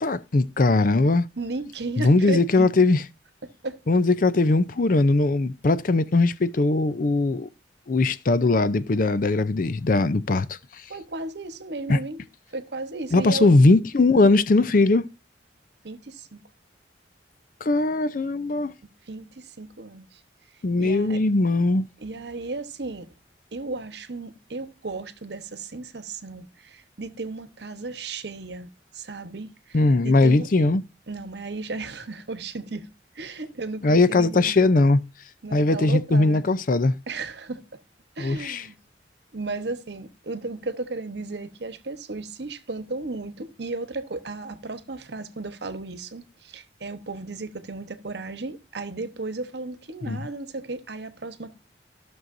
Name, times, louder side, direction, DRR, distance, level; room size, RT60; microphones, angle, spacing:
voice 1, 0.0-1.3 2.0-3.0 3.9-7.5 7.9-10.8 11.9-12.0 13.1-15.1 17.6-18.7 20.6-21.9 29.7-30.8 33.8-35.0 35.5-36.9 38.2-38.6 50.1-50.2, left 2 dB, 50° left, 0.5 m, -20 dB
voice 2, 1.4-2.7 3.4-3.8 10.9-12.2 12.5-13.5 15.8-16.4 19.1-20.2 20.8-21.2 22.0-23.1 23.5-30.5 31.1-32.9 33.1-34.7 35.4-36.4 37.1-37.8 38.2-38.7 39.3-51.6, right 3 dB, 70° right, 1.0 m, -35 dB
15.0 x 6.2 x 2.6 m
head